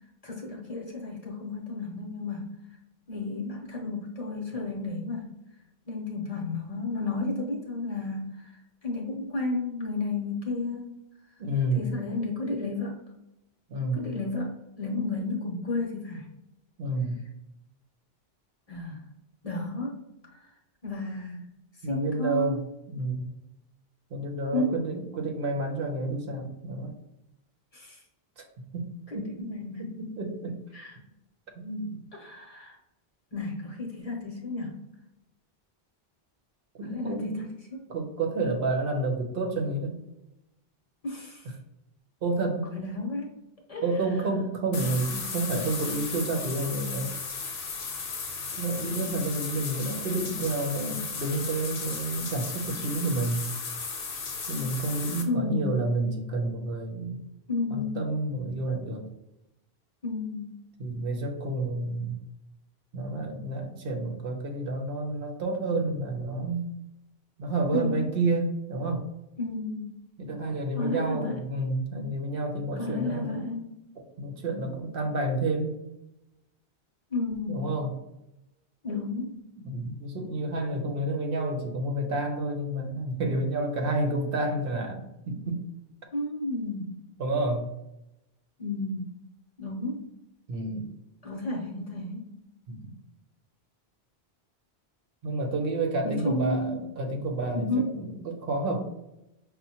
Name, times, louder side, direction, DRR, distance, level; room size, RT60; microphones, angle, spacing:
voice 1, 0.2-2.5 3.1-5.3 5.9-8.5 8.8-10.9 11.7-13.0 13.9-16.3 18.7-19.0 19.4-20.5 20.8-21.5 21.7-22.6 24.5-24.8 27.7-28.0 29.1-29.9 30.7-31.0 32.1-32.8 33.3-34.8 36.8-37.9 41.0-41.5 42.7-43.3 43.7-43.8 44.7-45.0 55.3-55.8 57.5-58.0 60.0-60.5 67.7-68.1 69.4-69.9 70.7-71.4 72.8-73.8 77.1-77.6 78.8-79.4 86.1-86.9 88.6-89.1 89.6-90.0 91.2-92.3 96.0-96.8 97.5-98.0, left 2 dB, 40° left, -1 dB, 0.7 m, -32 dB
voice 2, 11.4-11.9 13.7-14.0 16.8-17.2 21.8-22.6 22.9-23.3 24.1-26.9 28.4-28.5 28.7-28.9 29.1-29.5 29.8-30.6 31.6-32.0 36.8-37.5 37.9-40.0 42.2-42.7 43.8-47.1 48.5-53.5 54.5-57.2 57.7-59.1 60.8-62.2 62.9-66.6 67.4-69.1 70.2-73.4 74.2-75.8 77.5-77.9 79.6-85.6 87.2-87.7 90.5-90.9 92.7-92.9 95.2-98.8, right 2 dB, 65° right, 2 dB, 0.8 m, -30 dB
sound 1, 44.7-55.2, left 5 dB, 65° left, 0.9 m, -35 dB
5.4 x 2.1 x 2.8 m, 0.90 s
omnidirectional pair, 1.0 m